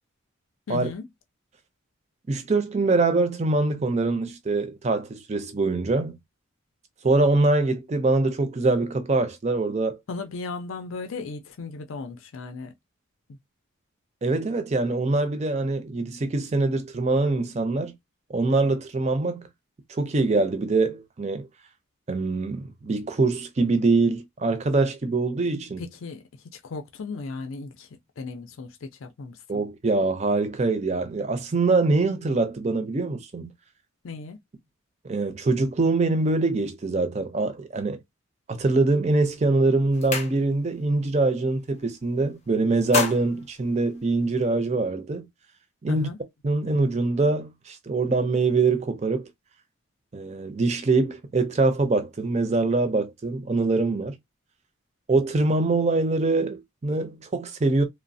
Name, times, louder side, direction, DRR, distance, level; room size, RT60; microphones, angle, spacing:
voice 1, 0.7-1.1 10.1-12.7 13.3-13.4 25.8-26.2 26.5-27.9 28.2-29.6 34.0-34.4 45.9-46.2, left 4 dB, 80° left, 0.5 m, -36 dB
voice 2, 2.3-6.2 7.0-10.0 14.2-17.9 18.3-19.5 19.9-21.5 22.1-25.8 29.5-33.5 35.0-38.0 38.5-45.3 45.8-46.1 46.4-49.3 50.1-54.2 55.1-57.8, right 3 dB, 30° right, 0.4 m, -24 dB
sound 1, 39.1-39.3 39.7-40.8 41.2-41.4 41.7-42.3 42.6-44.5, left 3 dB, 30° left, 0.5 m, -32 dB
3.0 x 2.0 x 2.6 m
head